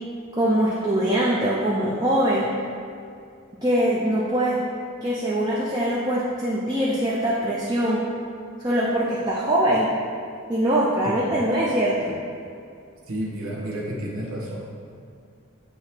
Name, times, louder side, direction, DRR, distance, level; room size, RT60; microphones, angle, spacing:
voice 1, 0.3-2.5 3.6-4.6 5.0-8.0 8.6-9.9 10.5-12.1, right 1 dB, 20° right, -6 dB, 0.5 m, -22 dB
voice 2, 11.0-11.4 12.0-12.2 13.1-14.6, right 1 dB, 75° right, -4 dB, 1.2 m, -31 dB
8.2 x 2.9 x 4.4 m, 2.4 s
head